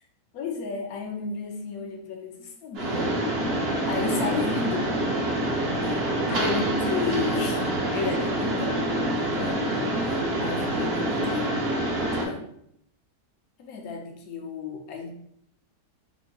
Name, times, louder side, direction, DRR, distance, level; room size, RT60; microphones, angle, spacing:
voice 1, 0.3-3.1 3.9-4.9 5.8-6.0 6.3-7.6 7.9-8.7 9.0-9.9 10.4-11.5 12.0-12.5 13.6-15.1, left 4 dB, 70° left, 2 dB, 1.0 m, -32 dB
Mechanisms, 2.8-12.3, right 1 dB, 55° right, 0.7 m, -26 dB
4.5 x 2.2 x 2.6 m, 0.71 s
omnidirectional pair, 1.8 m